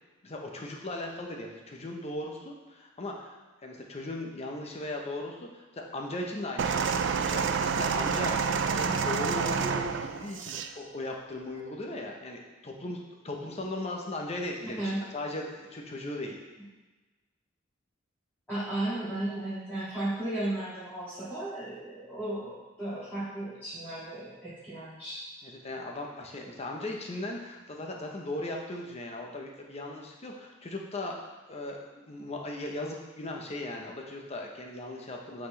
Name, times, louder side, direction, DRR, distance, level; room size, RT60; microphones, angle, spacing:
voice 1, 0.2-3.4 3.6-8.5 8.7-13.0 13.2-16.4 25.4-31.2 31.5-35.5, left 1 dB, 35° left, 1 dB, 0.8 m, -38 dB
sound 1, 6.6-10.7 11.6-11.7, right 6 dB, 65° right, 0.4 m, -28 dB
voice 2, 14.6-15.0 18.5-25.2, right 1 dB, 10° left, -14 dB, 2.0 m, -35 dB
8.4 x 4.2 x 3.2 m, 1.2 s
head